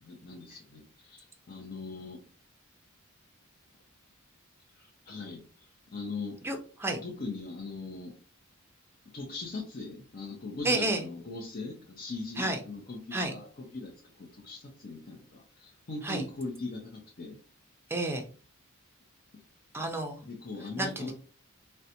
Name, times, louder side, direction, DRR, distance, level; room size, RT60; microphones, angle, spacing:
voice 1, 0.0-2.2 4.8-6.4 7.0-8.1 9.1-17.4 19.3-19.4 20.2-21.1, left 3 dB, 45° left, 0 dB, 0.6 m, -40 dB
voice 2, 6.4-7.0 10.6-11.0 12.4-12.6 13.1-13.3 16.0-16.2 17.9-18.2 19.7-20.2 20.8-21.1, right 2 dB, 10° right, 4 dB, 0.5 m, -30 dB
3.8 x 2.2 x 2.8 m, 0.38 s
head